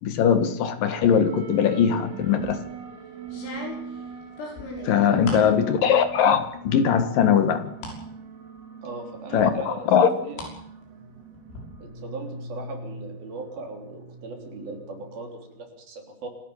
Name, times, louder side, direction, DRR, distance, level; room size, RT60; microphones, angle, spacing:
voice 1, 0.0-2.6 4.8-7.7 9.3-10.1, left 7 dB, 60° left, 10 dB, 2.5 m, -20 dB
sound 1, 0.9-15.7, right 5 dB, 65° right, 5.1 m, -41 dB
sound 2, 2.2-2.6 3.3-5.5 6.0-6.5 6.9-8.0 8.4-8.5 9.4-10.5 10.9-11.6, left 3 dB, 85° left, 8.7 m, -39 dB
voice 2, 5.0-5.5 8.8-9.9 10.2-10.4 11.8-16.3, right 3 dB, 50° right, 4 dB, 5.1 m, -38 dB
27.0 x 13.0 x 8.9 m, 0.75 s
omnidirectional pair, 5.7 m